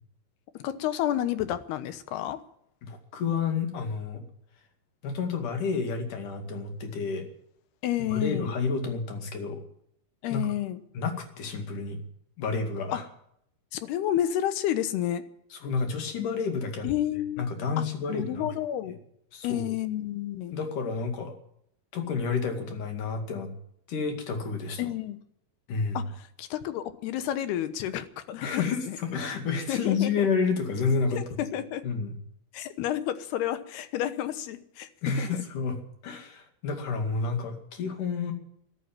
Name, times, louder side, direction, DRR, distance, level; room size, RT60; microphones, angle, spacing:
voice 1, 0.5-2.4 7.8-8.5 10.2-10.8 12.9-13.0 13.7-15.2 16.8-17.5 17.8-19.0 19.4-20.6 24.8-25.2 25.9-29.0 29.7-30.3 31.1-31.8 32.5-34.9 35.2-35.4, left 11 dB, 85° left, 12 dB, 3.1 m, -30 dB
voice 2, 2.8-4.2 5.0-7.3 8.1-9.6 10.3-10.5 11.0-12.0 12.4-13.0 15.5-16.9 17.4-18.5 19.3-19.7 20.5-21.3 21.9-23.5 23.9-24.8 25.7-26.0 28.4-31.2 31.8-32.1 35.0-35.8 36.0-38.3, left 5 dB, 55° left, 5 dB, 3.6 m, -30 dB
13.5 x 12.0 x 9.0 m, 0.71 s
omnidirectional pair, 4.5 m